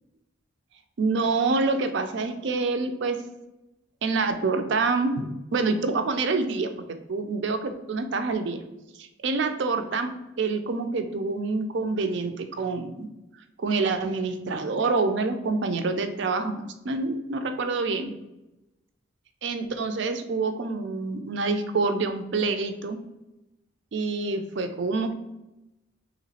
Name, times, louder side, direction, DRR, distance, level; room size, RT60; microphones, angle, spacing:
voice 1, 1.0-3.2 4.0-5.3 5.5-6.7 7.1-8.6 9.0-10.1 10.4-13.1 13.6-18.1 19.4-23.0 23.9-25.1, right 3 dB, 60° right, 7 dB, 0.4 m, -26 dB
3.2 x 3.0 x 4.1 m, 0.96 s
head